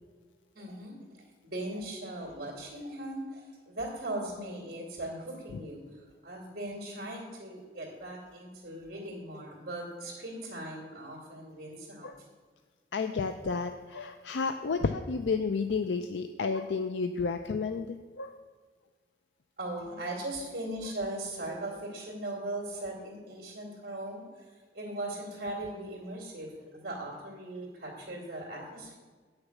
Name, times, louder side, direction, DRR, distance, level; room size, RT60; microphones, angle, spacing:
voice 1, 0.5-12.3 19.6-28.9, right 1 dB, 55° right, -3 dB, 2.6 m, -39 dB
voice 2, 12.9-18.3, left 4 dB, 85° left, 7 dB, 0.5 m, -31 dB
9.2 x 6.6 x 7.2 m, 1.5 s
head